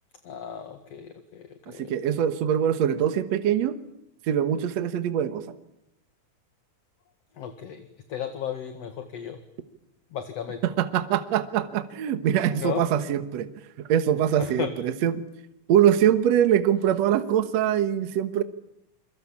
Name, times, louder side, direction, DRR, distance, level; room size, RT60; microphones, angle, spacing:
voice 1, 0.2-2.2 7.4-9.4 10.1-10.6 12.5-12.9 14.4-14.7, left 9 dB, 55° left, 8 dB, 2.6 m, -35 dB
voice 2, 1.8-3.8 4.3-5.5 10.6-13.5 13.9-15.2 15.7-18.4, right 10 dB, 60° right, 11 dB, 2.2 m, -23 dB
28.5 x 24.0 x 8.6 m, 0.82 s
omnidirectional pair, 3.9 m